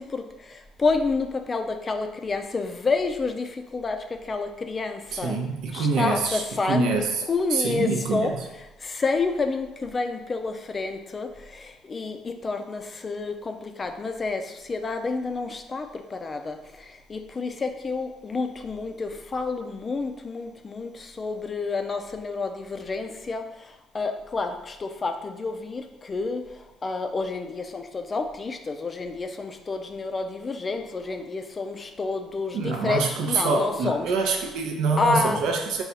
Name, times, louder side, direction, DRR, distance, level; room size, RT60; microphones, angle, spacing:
voice 1, 0.0-5.4 5.7-6.8 7.3-8.3 8.8-26.4 26.8-34.1 35.0-35.4, left 3 dB, 30° left, 6 dB, 0.4 m, -29 dB
voice 2, 5.1-7.2 7.5-8.4 32.5-35.8, right 4 dB, 75° right, 2 dB, 0.6 m, -25 dB
4.0 x 2.3 x 3.9 m, 0.97 s
cardioid pair, 110°, 0 cm